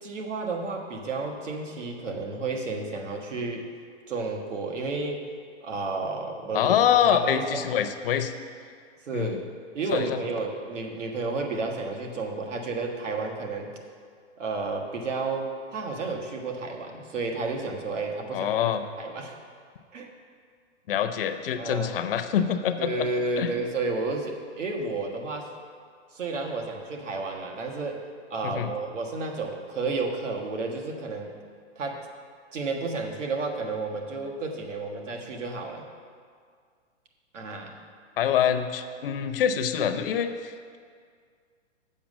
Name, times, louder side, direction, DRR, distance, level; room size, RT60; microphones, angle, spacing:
voice 1, 0.0-3.7 4.1-5.2 5.6-7.6 9.1-9.4 9.7-13.7 14.4-19.4 19.9-20.1 21.6-22.0 22.8-25.5 26.1-31.3 31.7-32.1 32.5-35.8 37.3-37.8, right 3 dB, 80° right, 2 dB, 1.5 m, -32 dB
voice 2, 6.5-8.3 9.1-9.4 9.9-10.2 18.3-18.8 20.9-23.1 23.4-23.5 28.4-28.7 38.2-40.8, left 9 dB, 50° left, 9 dB, 0.6 m, -25 dB
7.4 x 5.5 x 7.4 m, 2.1 s
hypercardioid pair, 145°, 36 cm